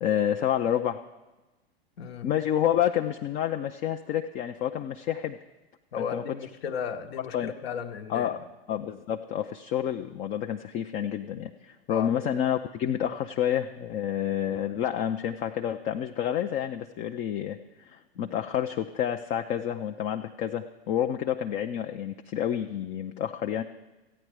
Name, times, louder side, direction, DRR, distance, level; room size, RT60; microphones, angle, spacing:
voice 1, 0.0-1.0 2.2-5.4 6.0-6.2 7.3-7.5 8.1-8.4 8.7-23.6, left 10 dB, 25° left, 0.3 m, -29 dB
voice 2, 2.0-2.3 5.9-8.3 11.9-12.1 18.1-18.4, left 7 dB, 70° left, 0.9 m, -35 dB
14.0 x 8.9 x 4.7 m
hypercardioid pair, 105°, 32 cm